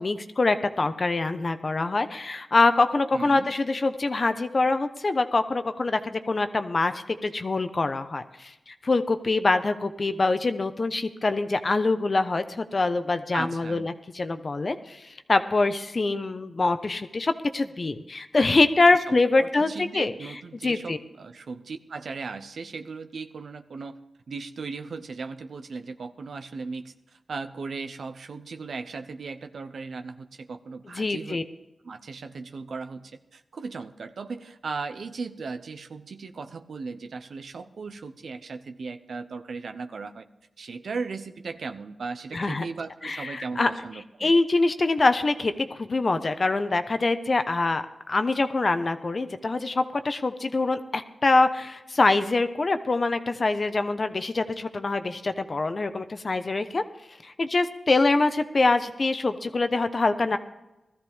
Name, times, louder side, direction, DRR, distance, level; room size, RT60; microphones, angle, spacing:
voice 1, 0.0-20.1 20.6-21.0 30.9-31.4 42.3-42.6 43.0-43.7 44.2-56.8 57.2-60.4, left 3 dB, 50° left, 9 dB, 1.0 m, -24 dB
voice 2, 3.1-3.5 13.3-14.0 18.9-24.0 24.3-31.4 31.8-40.3 40.6-44.3, right 4 dB, 80° right, 8 dB, 0.8 m, -37 dB
17.5 x 13.5 x 3.6 m, 0.98 s
cardioid pair, 50°, 0 cm